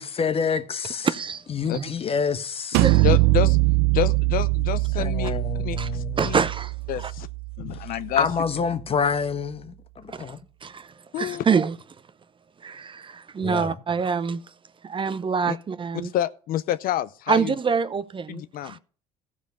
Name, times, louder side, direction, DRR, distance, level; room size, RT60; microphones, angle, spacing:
voice 1, 0.0-1.1 1.5-2.8 4.9-6.4 8.2-10.4 13.4-13.8, left 6 dB, 35° left, 1.0 m, -27 dB
voice 2, 1.0-1.4 1.7-1.9 2.8-3.1 5.8-5.9 6.2-6.7 7.0-7.1 10.1-10.3 10.6-10.9 11.2-11.7 12.6-14.4 14.8-16.1 17.3-18.8, right 6 dB, 30° right, 0.7 m, -26 dB
sound 1, 2.7-8.4, right 24 dB, 70° right, 0.4 m, -23 dB
voice 3, 2.9-3.6 3.9-6.4 6.9-7.3 7.6-8.3 11.1-11.4 15.4-15.6 16.0-17.5 18.3-18.8, left 12 dB, 55° left, 0.5 m, -28 dB
14.5 x 5.1 x 6.7 m
hypercardioid pair, 70°, 18 cm